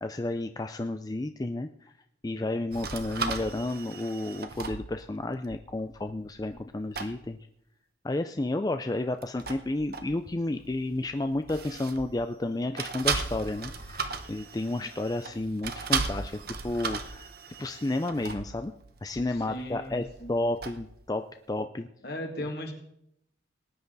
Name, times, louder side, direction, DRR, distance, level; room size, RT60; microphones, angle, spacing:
voice 1, 0.0-1.9 2.2-7.4 8.0-17.3 17.6-18.7 19.0-21.9, left 2 dB, 20° left, 8 dB, 0.4 m, -31 dB
sound 1, 2.7-6.7 6.9-7.2 9.1-12.4 12.8-21.0, right 5 dB, 50° right, 1.1 m, -37 dB
voice 2, 19.3-20.4 22.0-22.7, equal, 55° left, 3 dB, 2.3 m, -37 dB
19.0 x 10.5 x 4.0 m, 0.76 s
head